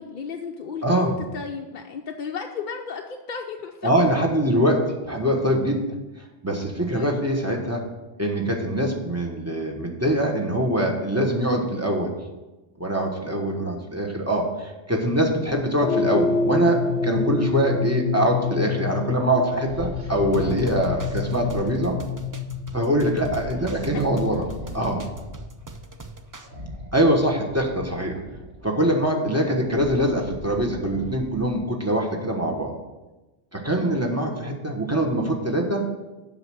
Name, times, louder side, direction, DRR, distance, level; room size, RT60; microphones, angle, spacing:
voice 1, 0.0-3.9 6.9-7.1 8.8-9.0 23.4-24.1 29.3-29.5 33.7-34.0, left 6 dB, 55° left, 2 dB, 0.7 m, -35 dB
voice 2, 0.8-1.1 3.8-5.8 6.4-7.8 8.2-12.1 12.8-22.0 22.7-24.4 24.7-25.0 26.9-28.2 28.6-32.7 33.5-35.8, right 1 dB, 15° right, 0 dB, 1.2 m, -23 dB
sound 1, 15.8-24.3, left 4 dB, 90° left, 0.9 m, -27 dB
sound 2, 19.6-22.0 23.1-25.5 26.4-28.7 29.3-31.7, equal, 50° right, 1.7 m, -38 dB
sound 3, 20.3-26.5, right 3 dB, 30° right, 0.3 m, -42 dB
7.8 x 5.8 x 6.1 m, 1.1 s
omnidirectional pair, 1.2 m